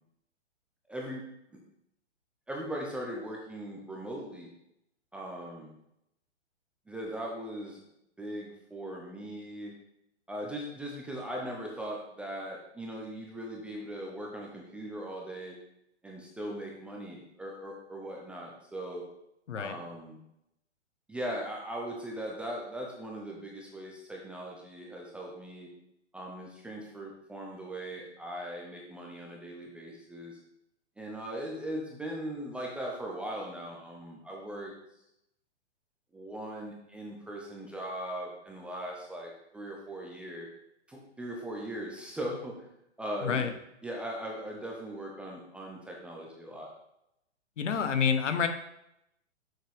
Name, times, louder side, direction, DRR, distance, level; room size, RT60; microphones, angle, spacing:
voice 1, 0.9-1.2 1.5-1.6 2.5-4.5 5.1-5.8 6.9-7.8 8.2-9.7 10.3-15.6 16.0-19.0 19.6-20.2 21.1-25.7 26.1-30.4 31.0-34.7 36.1-40.5 40.9-42.7 43.0-43.5 43.8-46.7, right 1 dB, 5° right, -2 dB, 0.4 m, -39 dB
voice 2, 43.2-43.5 47.6-48.5, left 6 dB, 85° left, 9 dB, 1.0 m, -28 dB
6.6 x 6.5 x 3.4 m, 0.81 s
hypercardioid pair, 135°, 36 cm